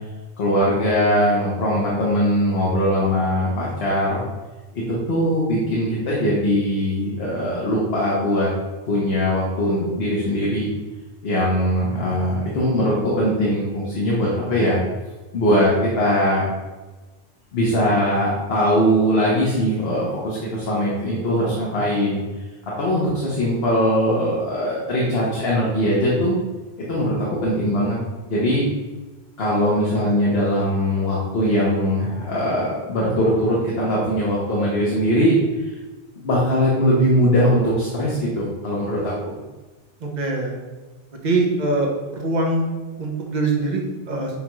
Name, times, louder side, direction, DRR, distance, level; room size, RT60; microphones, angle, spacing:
voice 1, 0.4-4.2 4.7-8.5 8.9-10.7 11.2-14.8 15.3-16.4 17.5-22.2 22.8-26.4 26.9-28.0 28.3-28.6 29.4-35.4 36.2-39.3, equal, 75° left, -6 dB, 1.1 m, -21 dB
voice 2, 40.0-40.6 41.2-42.6 43.0-44.4, right 2 dB, 50° right, 0 dB, 0.8 m, -23 dB
7.0 x 2.3 x 3.0 m, 1.2 s
omnidirectional pair, 1.0 m